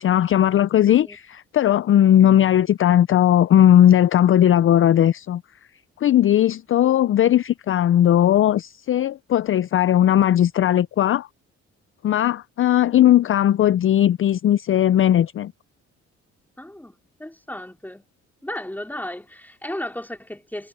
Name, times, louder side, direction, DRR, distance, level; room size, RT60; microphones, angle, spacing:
voice 1, 0.0-5.4 6.0-11.3 12.0-15.5, left 11 dB, 45° left, 0.4 m, -17 dB
voice 2, 0.9-1.2 13.2-13.3 16.6-16.9 17.2-18.0 18.4-20.7, left 1 dB, 5° left, 4.7 m, -34 dB
cardioid pair, 90°, 30 cm